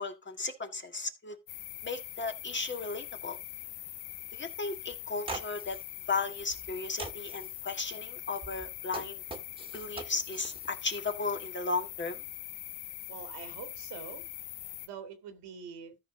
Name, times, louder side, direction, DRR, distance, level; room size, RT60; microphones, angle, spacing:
voice 1, 0.0-1.4 1.8-3.4 4.3-5.8 6.1-9.2 9.7-12.2, left 4 dB, 25° left, 1.8 m, -35 dB
sound 1, 1.5-14.9, left 15 dB, 80° left, 0.7 m, -43 dB
sound 2, 4.9-5.0 5.2-5.8 6.4-6.7 7.0-7.5 8.4-10.8, right 2 dB, 15° right, 1.8 m, -42 dB
voice 2, 13.1-14.2 14.8-16.0, right 7 dB, 80° right, 2.3 m, -45 dB
14.0 x 4.6 x 3.9 m
cardioid pair, 85°, 40 cm